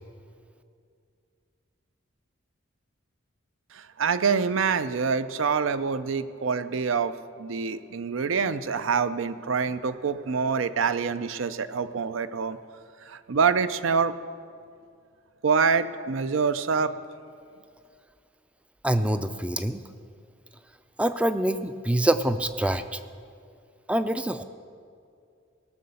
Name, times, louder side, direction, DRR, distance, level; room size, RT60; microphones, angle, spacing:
voice 1, 3.7-12.6 13.1-14.2 15.4-16.9, right 5 dB, 75° right, 13 dB, 0.5 m, -26 dB
voice 2, 18.8-19.8 21.0-23.0 23.9-24.4, right 1 dB, 5° right, 11 dB, 0.3 m, -25 dB
17.0 x 6.5 x 6.9 m, 2.4 s
head